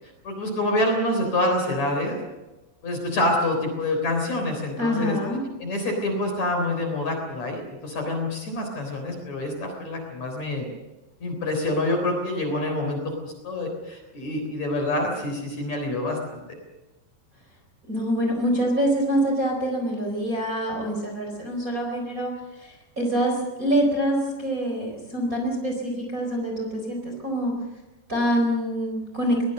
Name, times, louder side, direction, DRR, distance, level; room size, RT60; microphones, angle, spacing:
voice 1, 0.2-2.2 2.8-5.2 5.6-10.7 11.2-16.4, left 1 dB, 40° left, 3 dB, 4.5 m, -26 dB
voice 2, 4.8-5.4 17.9-27.5 28.1-29.5, equal, 20° right, 1 dB, 4.2 m, -25 dB
22.5 x 19.5 x 6.6 m, 1.1 s
omnidirectional pair, 5.4 m